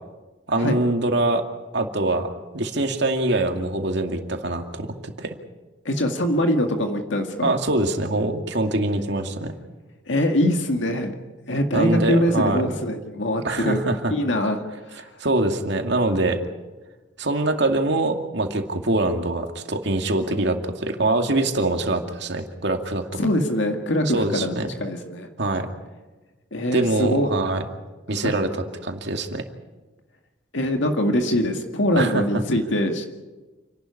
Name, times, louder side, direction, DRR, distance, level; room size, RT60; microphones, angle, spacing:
voice 1, 0.5-1.4 1.7-2.3 2.5-5.4 7.4-9.5 11.7-12.8 13.4-14.1 15.2-16.4 17.2-23.2 24.1-24.7 25.4-25.7 26.7-27.6 28.1-28.5 28.8-29.4 32.0-32.2, right 2 dB, 65° right, 4 dB, 2.4 m, -24 dB
voice 2, 5.9-7.6 10.1-11.1 11.5-15.0 23.2-24.5 24.8-25.3 26.5-27.3 28.2-28.3 30.5-33.0, equal, 75° left, 4 dB, 2.0 m, -23 dB
29.0 x 12.0 x 9.8 m, 1.2 s
head